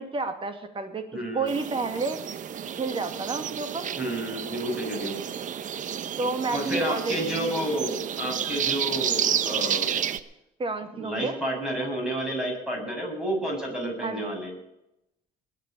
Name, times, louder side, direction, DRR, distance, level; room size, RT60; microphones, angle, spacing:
voice 1, 0.0-2.2 2.8-3.9 6.2-7.8 10.6-11.4 14.0-14.4, right 3 dB, 30° right, 8 dB, 2.3 m, -31 dB
voice 2, 1.1-1.5 4.0-5.2 6.5-10.0 10.9-14.5, right 1 dB, 5° right, -1 dB, 7.2 m, -30 dB
sound 1, 1.5-10.2, right 9 dB, 50° right, 0.9 m, -31 dB
20.5 x 6.9 x 8.7 m, 0.85 s
cardioid pair, 110°, 17 cm